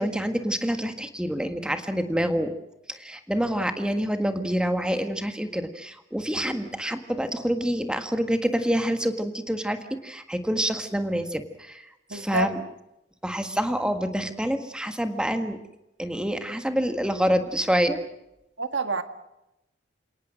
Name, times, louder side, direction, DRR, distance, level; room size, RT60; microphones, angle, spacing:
voice 1, 0.0-2.5 2.9-11.8 12.1-12.6 13.2-15.6 16.0-18.0, equal, 5° right, 8 dB, 1.7 m, -27 dB
voice 2, 12.1-12.5 18.6-19.0, right 3 dB, 85° right, 9 dB, 1.8 m, -27 dB
28.5 x 18.5 x 6.4 m, 0.88 s
head